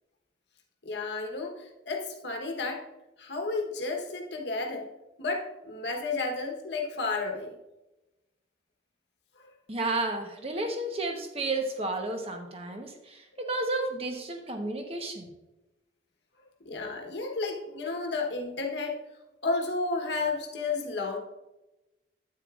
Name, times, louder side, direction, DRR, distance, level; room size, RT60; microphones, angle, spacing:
voice 1, 0.8-2.9 3.2-4.9 5.2-7.6 9.4-9.5 16.6-19.0 19.4-21.2, left 3 dB, 75° left, 1 dB, 1.2 m, -32 dB
voice 2, 9.7-15.3, right 2 dB, 35° right, 3 dB, 1.0 m, -32 dB
8.9 x 8.7 x 2.5 m, 0.99 s
head